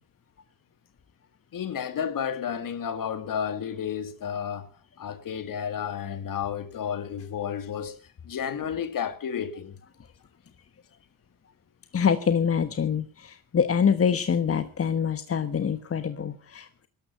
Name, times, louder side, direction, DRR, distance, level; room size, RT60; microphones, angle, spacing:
voice 1, 1.5-4.7 5.0-8.0 8.2-9.8, left 8 dB, 55° left, 2.2 m, -31 dB
voice 2, 11.9-16.9, left 7 dB, 35° left, 1.2 m, -25 dB
16.5 x 12.5 x 5.8 m
supercardioid pair, 65°, 38 cm